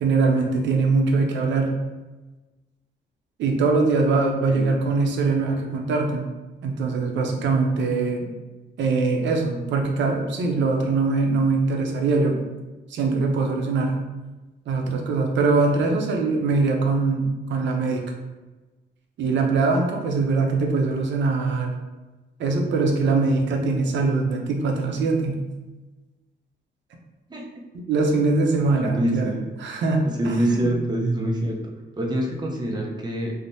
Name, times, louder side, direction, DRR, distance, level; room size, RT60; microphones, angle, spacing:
voice 1, 0.0-1.7 3.4-6.3 6.6-8.3 8.8-12.4 12.9-14.0 14.7-18.0 19.2-21.7 22.4-25.4 27.9-29.3 29.6-30.7, right 3 dB, 80° right, 2 dB, 0.5 m, -22 dB
voice 2, 4.5-4.8 27.3-27.5 28.8-29.4 30.2-33.3, right 1 dB, 25° right, -1 dB, 0.5 m, -25 dB
3.2 x 2.0 x 2.6 m, 1.2 s
cardioid pair, 120°, 18 cm